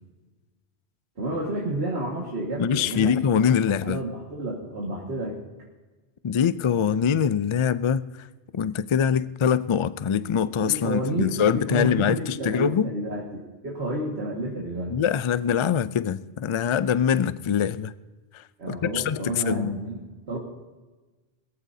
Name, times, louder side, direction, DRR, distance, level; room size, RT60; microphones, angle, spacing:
voice 1, 1.2-3.2 3.8-5.4 10.6-15.0 18.6-20.4, right 1 dB, 85° right, 2.1 m, -30 dB
voice 2, 2.6-4.0 6.2-8.3 8.5-12.9 14.9-17.9 18.3-19.8, left 8 dB, 55° left, 0.3 m, -24 dB
21.0 x 14.5 x 2.7 m
omnidirectional pair, 1.1 m